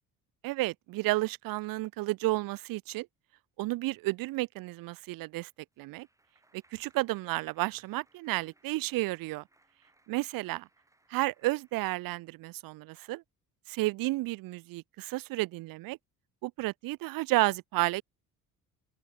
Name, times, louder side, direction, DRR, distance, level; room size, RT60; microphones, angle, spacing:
voice 1, 0.4-3.1 3.6-5.5 5.8-6.1 6.7-9.4 10.1-10.7 11.1-13.2 13.7-16.0 16.4-18.0, right 20 dB, 80° right, 0.8 m, -32 dB
Clapping, 5.5-12.4, right 2 dB, 10° right, 7.0 m, -69 dB
open air
cardioid pair, 165°, 34 cm